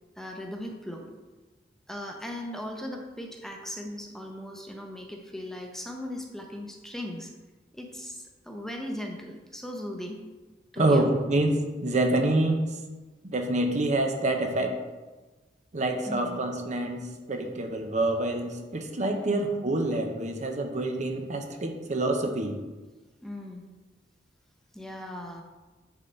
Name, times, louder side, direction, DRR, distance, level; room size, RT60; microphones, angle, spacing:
voice 1, 0.2-1.1 1.9-7.3 7.7-10.3 10.7-11.0 16.0-16.4 19.1-19.5 23.2-23.6 24.7-25.4, left 1 dB, ahead, 2 dB, 0.7 m, -38 dB
voice 2, 10.8-12.7 13.3-14.8 15.7-22.6, right 2 dB, 40° right, 4 dB, 0.8 m, -27 dB
9.9 x 4.0 x 4.4 m, 1.2 s
head